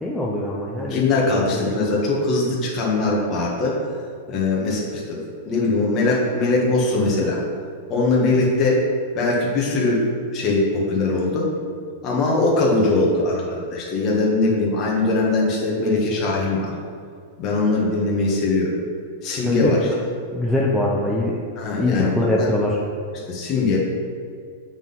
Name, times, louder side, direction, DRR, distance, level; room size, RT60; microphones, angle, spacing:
voice 1, 0.0-1.0 1.3-1.6 19.4-20.0 20.3-21.4 21.8-22.8, left 1 dB, 5° left, -5 dB, 0.7 m, -23 dB
voice 2, 0.9-3.8 4.3-5.2 5.4-7.4 7.9-8.8 9.1-10.0 10.3-11.5 12.0-16.7 17.4-18.7 19.2-19.9 21.6-22.5 23.3-23.8, left 3 dB, 30° left, -4 dB, 1.5 m, -21 dB
7.1 x 3.9 x 5.6 m, 2.2 s
supercardioid pair, 145°, 0 cm